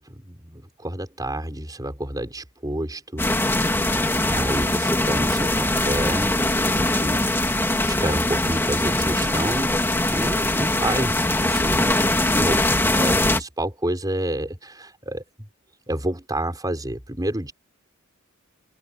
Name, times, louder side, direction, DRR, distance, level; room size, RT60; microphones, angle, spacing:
voice 1, 0.0-7.5 7.9-9.8 10.1-15.2 15.9-17.5, right 1 dB, 15° right, 4.9 m, -29 dB
sound 1, 3.2-13.4, left 1 dB, 10° left, 2.1 m, -22 dB
head